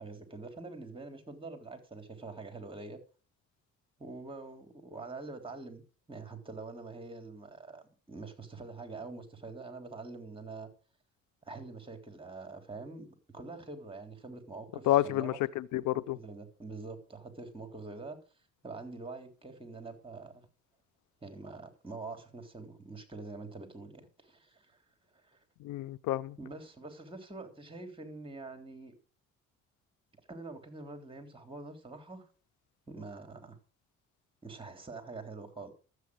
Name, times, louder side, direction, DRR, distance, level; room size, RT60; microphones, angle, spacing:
voice 1, 0.0-3.0 4.0-10.7 11.4-13.1 13.3-15.4 15.9-18.2 18.6-20.5 21.2-24.8 25.1-25.4 26.4-28.9 30.3-32.2 32.9-33.6 34.4-35.7, right 3 dB, 15° right, 3.6 m, -45 dB
voice 2, 14.9-16.2 25.6-26.3, left 14 dB, 85° left, 0.6 m, -29 dB
12.5 x 8.4 x 6.3 m
cardioid pair, 90°, 30 cm